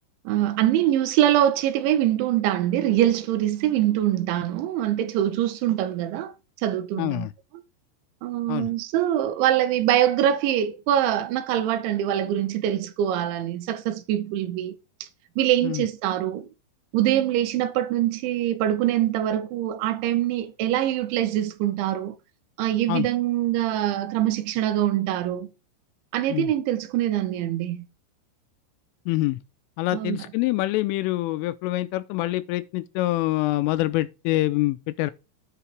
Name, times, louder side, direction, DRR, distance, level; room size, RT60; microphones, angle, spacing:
voice 1, 0.3-6.3 6.6-7.3 8.2-14.8 15.0-15.1 15.4-16.5 16.9-22.2 22.6-25.5 26.1-27.9 29.9-30.2, right 12 dB, 75° right, 3.1 m, -24 dB
voice 2, 7.0-7.3 8.5-8.7 15.6-15.9 22.9-23.1 26.3-26.5 29.1-29.4 29.8-35.1, left 18 dB, 85° left, 3.2 m, -25 dB
10.0 x 4.7 x 4.6 m
omnidirectional pair, 5.8 m